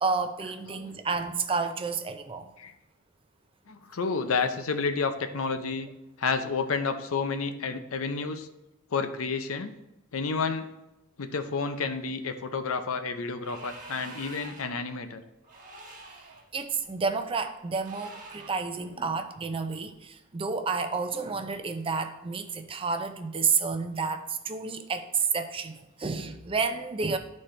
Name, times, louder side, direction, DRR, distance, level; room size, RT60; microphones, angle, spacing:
voice 1, 0.0-2.5 16.5-27.2, right 5 dB, 25° right, 8 dB, 0.5 m, -30 dB
voice 2, 3.7-5.9 6.2-8.5 8.9-9.7 10.1-10.7 11.2-15.2, left 4 dB, 75° left, 8 dB, 0.6 m, -30 dB
sound 1, 13.4-14.8 15.4-16.5 17.8-18.7, right 2 dB, 40° right, 1.1 m, -46 dB
11.5 x 4.3 x 3.2 m, 0.95 s
head